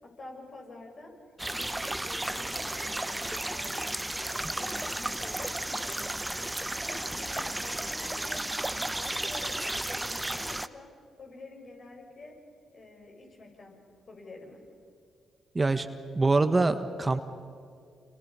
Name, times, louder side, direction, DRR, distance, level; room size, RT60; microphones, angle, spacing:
voice 1, 0.0-1.1 1.5-3.9 4.3-6.1 6.7-8.6 8.9-10.9 11.2-12.3 12.7-13.8 14.1-14.6, left 2 dB, 55° left, 0 dB, 7.1 m, -48 dB
sound 1, 1.4-10.7, right 1 dB, 15° right, 1.0 m, -33 dB
voice 2, 15.5-15.9 16.1-17.2, right 3 dB, 30° right, 9 dB, 1.4 m, -24 dB
28.5 x 28.0 x 5.6 m, 2.3 s
hypercardioid pair, 45°, 0 cm